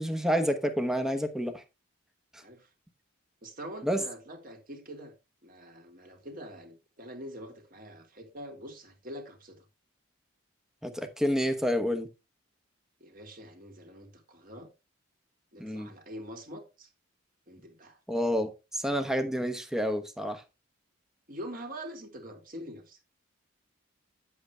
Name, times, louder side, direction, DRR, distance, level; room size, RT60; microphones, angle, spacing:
voice 1, 0.0-1.6 2.3-2.4 3.8-4.0 10.8-12.1 15.6-15.9 18.1-20.4, equal, ahead, 1.1 m, -29 dB
voice 2, 2.4-2.7 3.4-5.1 5.4-9.6 13.0-14.7 15.5-16.9 17.5-18.0 21.3-23.0, equal, 40° right, 2.4 m, -44 dB
9.7 x 7.9 x 3.3 m
head